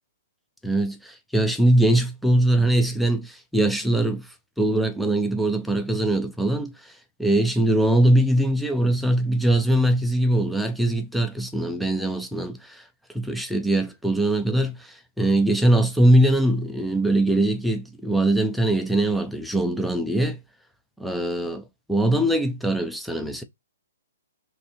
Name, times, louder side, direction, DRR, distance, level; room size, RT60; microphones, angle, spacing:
voice 1, 0.6-4.3 4.6-6.7 7.2-12.8 13.1-20.4 21.0-21.6 21.9-23.4, right 1 dB, ahead, 0.4 m, -22 dB
3.2 x 2.6 x 2.8 m
hypercardioid pair, 150°, 0 cm